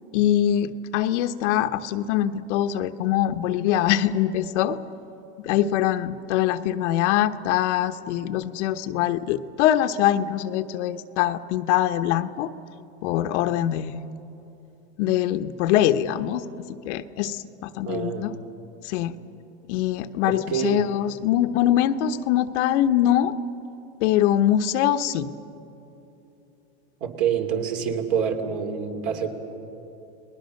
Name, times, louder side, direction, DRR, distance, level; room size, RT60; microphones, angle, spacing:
voice 1, 0.1-4.8 5.4-12.5 13.0-14.1 15.0-16.4 16.8-18.4 18.8-19.1 19.7-23.3 24.0-25.3, left 11 dB, 75° left, 9 dB, 1.1 m, -23 dB
voice 2, 17.9-18.2 20.2-20.8 27.0-29.3, right 8 dB, 60° right, 4 dB, 3.1 m, -26 dB
30.0 x 20.0 x 6.6 m, 2.9 s
supercardioid pair, 120°, 35 cm